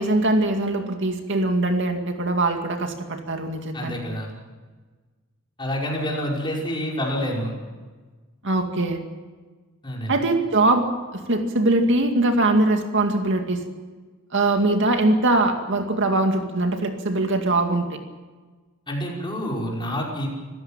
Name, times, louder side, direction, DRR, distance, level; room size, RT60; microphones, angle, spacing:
voice 1, 0.0-4.0 8.4-9.0 10.1-10.9 11.1-13.6 14.3-18.0, right 2 dB, 60° right, 5 dB, 2.3 m, -22 dB
voice 2, 3.7-4.3 5.6-7.6 9.8-10.2 18.9-20.3, equal, 25° left, -2 dB, 5.5 m, -28 dB
26.0 x 15.5 x 7.4 m, 1.4 s
head